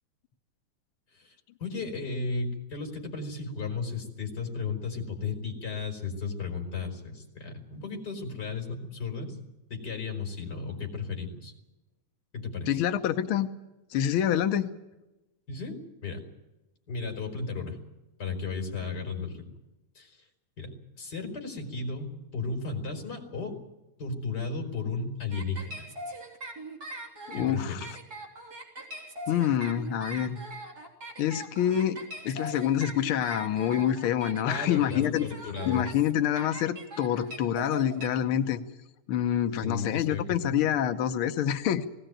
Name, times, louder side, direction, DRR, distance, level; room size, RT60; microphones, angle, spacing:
voice 1, 1.6-9.4 9.7-11.5 12.3-12.8 15.5-16.2 16.9-17.8 18.2-19.4 19.9-20.2 20.6-23.5 24.0-25.9 27.3-27.9 34.4-35.9 39.6-40.6, left 4 dB, 30° left, 4 dB, 4.2 m, -34 dB
voice 2, 12.7-13.5 13.9-14.7 27.3-27.9 29.3-30.4 31.2-32.0 32.2-35.3 35.7-38.6 39.1-41.9, left 10 dB, 85° left, 7 dB, 1.1 m, -27 dB
sound 1, 25.3-38.1, right 2 dB, 30° right, 3.7 m, -41 dB
19.5 x 17.5 x 9.0 m, 0.99 s
omnidirectional pair, 3.7 m